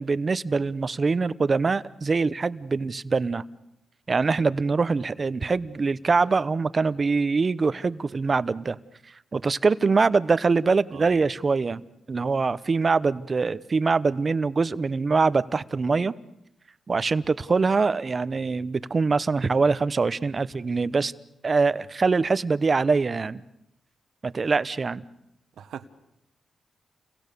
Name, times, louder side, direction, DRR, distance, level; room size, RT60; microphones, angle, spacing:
voice 1, 0.0-3.4 4.1-8.8 9.3-16.1 16.9-21.1 21.4-23.4 24.2-25.0, right 4 dB, 45° right, 16 dB, 0.9 m, -23 dB
voice 2, 10.9-11.3 25.6-25.9, right 8 dB, 85° right, 12 dB, 1.4 m, -41 dB
29.5 x 23.5 x 6.9 m, 0.86 s
cardioid pair, 65°, 0 cm